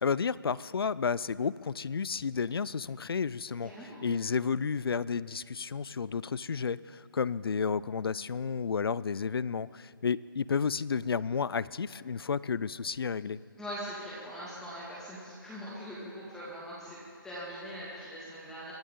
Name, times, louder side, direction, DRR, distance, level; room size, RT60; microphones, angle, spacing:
voice 1, 0.0-13.4, left 6 dB, 80° left, 20 dB, 0.4 m, -32 dB
voice 2, 3.6-4.0 13.6-18.7, equal, 5° left, -8 dB, 2.1 m, -42 dB
23.5 x 14.0 x 3.8 m, 2.3 s
hypercardioid pair, 155°, 12 cm